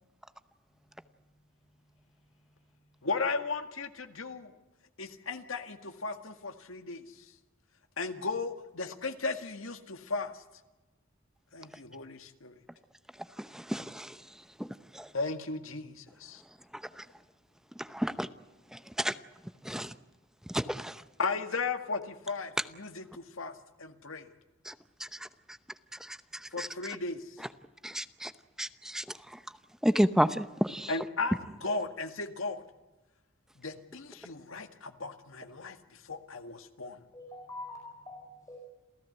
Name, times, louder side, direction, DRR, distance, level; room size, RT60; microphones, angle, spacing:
voice 1, 3.0-4.5 5.0-7.0 8.0-10.4 11.5-12.6 15.1-16.4 21.2-23.5 23.8-24.3 26.5-27.2 30.9-32.6 33.6-35.8 36.1-37.0, left 3 dB, 80° left, 1.9 m, -36 dB
voice 2, 13.5-14.1 14.9-15.1 17.9-18.3 19.0-19.1 19.7-19.9 20.5-20.9 24.7-24.8 26.6-26.7 27.8-28.3 28.6-29.0 29.8-30.9, equal, 5° right, 0.8 m, -29 dB
voice 3, 37.1-38.6, left 2 dB, 15° left, 4.9 m, -45 dB
28.0 x 15.5 x 8.0 m
head